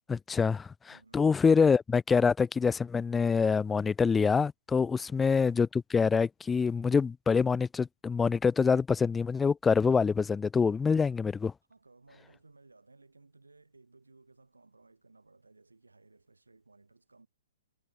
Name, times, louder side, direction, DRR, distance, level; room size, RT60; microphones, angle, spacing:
voice 1, 0.1-11.5, left 5 dB, 10° left, 0.3 m, -26 dB
voice 2, 0.9-1.3 4.9-5.2 11.7-17.3, right 3 dB, 85° right, 8.0 m, -60 dB
figure-of-eight pair, 120°, 0 cm